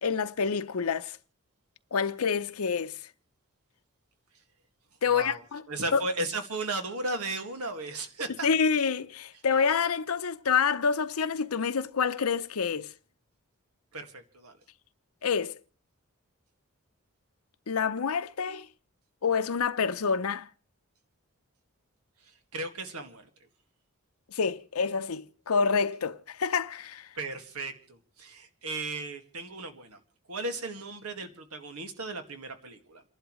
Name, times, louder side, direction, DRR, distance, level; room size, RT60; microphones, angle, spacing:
voice 1, 0.0-1.2 1.9-3.0 5.0-5.6 5.9-6.0 8.4-12.9 15.2-15.6 17.7-18.7 19.2-20.5 24.3-27.1, left 6 dB, 80° left, 0.7 m, -27 dB
voice 2, 5.1-5.4 5.7-8.5 13.9-14.6 22.5-23.3 27.2-30.0 30.3-33.0, right 2 dB, 90° right, 2.0 m, -35 dB
29.5 x 11.5 x 3.1 m
head